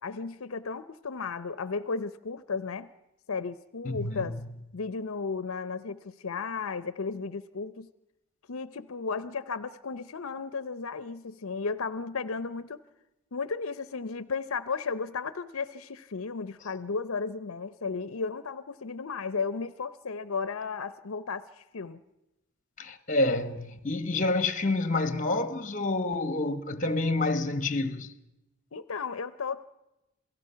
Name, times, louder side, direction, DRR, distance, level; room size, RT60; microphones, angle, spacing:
voice 1, 0.0-2.9 3.3-4.4 4.7-7.9 8.5-12.8 13.3-22.0 28.7-29.7, left 4 dB, 75° left, 0.6 m, -34 dB
voice 2, 3.8-4.3 22.8-28.1, left 2 dB, 35° left, 1.2 m, -28 dB
28.0 x 17.5 x 5.7 m
head